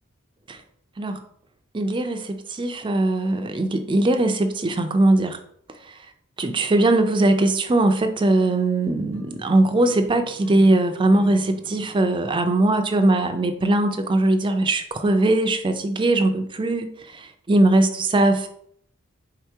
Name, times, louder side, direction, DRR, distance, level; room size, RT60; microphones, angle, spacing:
voice 1, 1.7-5.4 5.9-6.0 6.4-18.5, right 2 dB, 25° right, 7 dB, 0.4 m, -20 dB
sound 1, 9.1-14.0, equal, 35° left, 1.0 m, -47 dB
4.1 x 2.8 x 4.5 m, 0.64 s
head